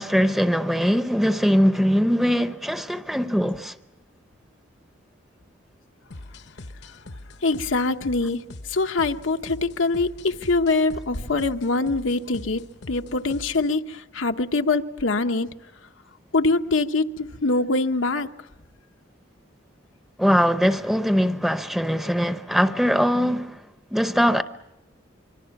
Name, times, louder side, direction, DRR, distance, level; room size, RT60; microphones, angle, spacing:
voice 1, 0.0-3.7 20.2-23.6 23.9-24.4, equal, ahead, 0.7 m, -21 dB
sound 1, 6.1-13.8, left 2 dB, 60° left, 0.9 m, -43 dB
voice 2, 7.4-8.4 8.7-15.5 16.3-18.3, left 3 dB, 90° left, 1.1 m, -24 dB
25.5 x 24.0 x 6.0 m
head